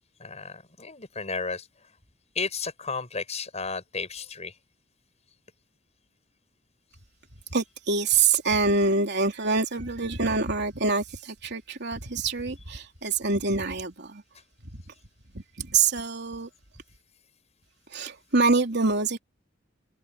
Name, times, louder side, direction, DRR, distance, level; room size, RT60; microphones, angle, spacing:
voice 1, 0.2-1.7 2.3-4.5, left 4 dB, 35° left, 7.5 m, -33 dB
voice 2, 7.5-14.2 14.7-14.8 15.6-16.5 17.9-19.2, right 4 dB, 60° right, 3.3 m, -25 dB
head